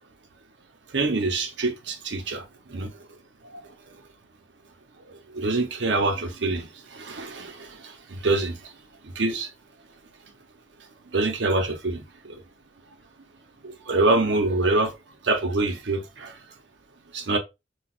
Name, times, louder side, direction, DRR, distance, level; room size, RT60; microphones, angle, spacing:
voice 1, 0.9-2.4 2.7-2.9 5.3-6.7 6.9-7.7 8.1-8.5 9.2-9.5 11.1-12.0 12.3-12.4 13.9-14.9 15.2-16.3 17.1-17.4, right 2 dB, 85° right, 0.8 m, -25 dB
5.9 x 2.4 x 2.4 m
head